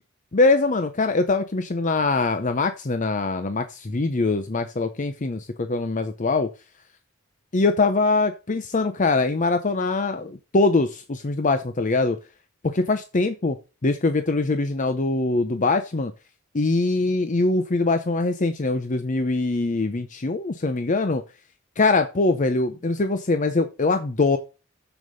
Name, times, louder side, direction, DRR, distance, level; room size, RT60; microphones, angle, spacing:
voice 1, 0.3-6.5 7.5-12.2 12.6-13.6 13.8-16.1 16.5-21.2 21.8-24.4, left 3 dB, 35° left, 9 dB, 0.7 m, -23 dB
7.2 x 6.4 x 5.2 m, 0.31 s
head